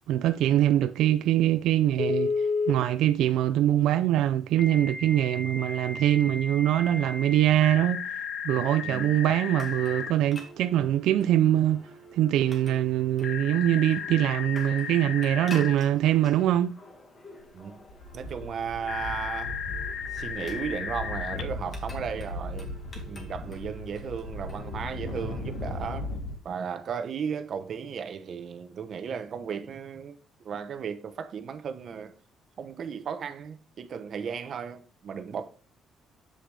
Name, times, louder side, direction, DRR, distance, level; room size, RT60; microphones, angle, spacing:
voice 1, 0.1-2.3 2.7-8.1 8.4-11.8 12.1-16.8, right 12 dB, 80° right, 0.3 m, -23 dB
Telephone, 2.0-2.7 4.6-10.1 13.2-15.8 18.9-21.4, left 5 dB, 45° left, 1.1 m, -33 dB
sound 1, 9.2-25.9, left 1 dB, 25° left, 1.9 m, -49 dB
sound 2, 17.4-17.6 17.9-26.3, left 1 dB, 90° left, 1.9 m, -37 dB
voice 2, 18.1-19.6 20.1-22.7 22.9-26.1 26.4-30.2 30.4-32.1 32.6-35.5, right 7 dB, 45° right, 0.8 m, -35 dB
7.9 x 6.4 x 3.3 m
cardioid pair, 155°, 0 cm